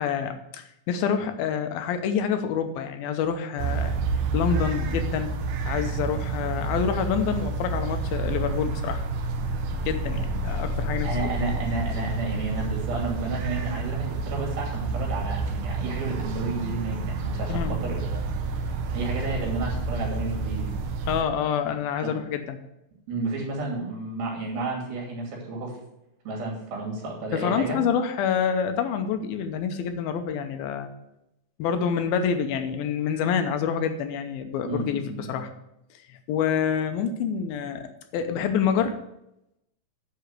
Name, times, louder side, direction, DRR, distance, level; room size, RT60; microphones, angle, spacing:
voice 1, 0.0-3.9 4.3-5.3 5.6-9.0 9.9-11.1 17.5-17.8 21.1-22.6 27.3-30.9 31.6-35.5 36.1-39.0, left 7 dB, 85° left, 7 dB, 2.7 m, -27 dB
sound 1, 3.6-21.2, right 3 dB, 70° right, 2.2 m, -29 dB
voice 2, 11.0-18.2 18.6-18.7 18.9-20.7 22.0-22.2 23.1-25.8 26.2-27.8 34.6-35.4, right 3 dB, 90° right, -1 dB, 4.6 m, -32 dB
9.8 x 5.0 x 6.6 m, 0.85 s
omnidirectional pair, 4.1 m